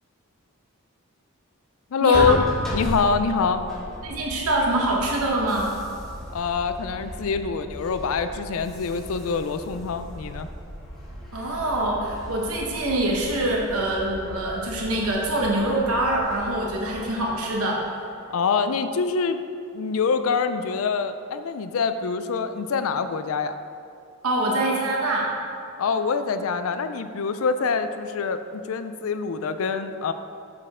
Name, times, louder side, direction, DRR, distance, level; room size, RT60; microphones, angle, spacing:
voice 1, 1.9-2.4 2.7-3.6 6.3-10.5 18.3-19.4 19.7-23.5 25.8-30.1, left 5 dB, 70° left, 10 dB, 0.4 m, -25 dB
sound 1, 2.1-17.8, equal, ahead, 1.8 m, -36 dB
voice 2, 4.0-5.7 11.3-17.8 24.2-25.3, right 1 dB, 85° right, -2 dB, 1.0 m, -24 dB
7.7 x 6.5 x 3.6 m, 2.5 s
head